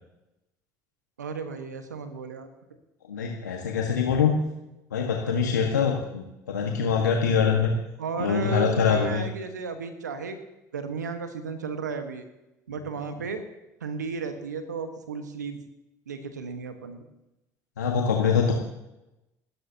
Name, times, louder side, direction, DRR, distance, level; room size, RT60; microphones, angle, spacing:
voice 1, 1.2-2.5 8.0-10.4 10.7-12.3 12.7-13.4 13.8-15.6 16.1-17.0, right 4 dB, 90° right, 8 dB, 1.4 m, -34 dB
voice 2, 3.1-4.3 4.9-7.7 8.2-9.2 17.8-18.5, left 6 dB, 90° left, 1 dB, 1.6 m, -24 dB
29.0 x 13.0 x 2.9 m, 0.94 s
hypercardioid pair, 65°, 9 cm